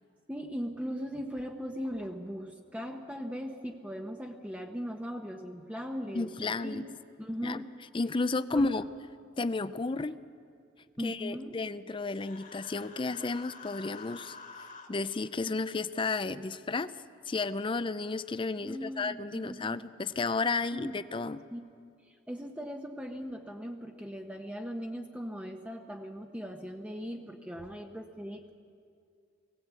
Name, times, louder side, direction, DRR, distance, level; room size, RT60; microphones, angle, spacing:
voice 1, 0.3-7.7 8.5-8.9 11.0-11.6 18.6-19.8 20.7-21.0 21.5-21.7 22.0-28.5, equal, 5° right, 2 dB, 0.9 m, -39 dB
voice 2, 6.1-6.9 7.4-7.6 7.9-8.8 9.4-10.2 11.0-14.4 14.9-16.9 17.3-21.4, left 3 dB, 25° left, 14 dB, 0.5 m, -32 dB
Human voice, 12.1-14.9, left 4 dB, 45° left, 1.9 m, -48 dB
19.5 x 17.5 x 8.2 m, 2.3 s
head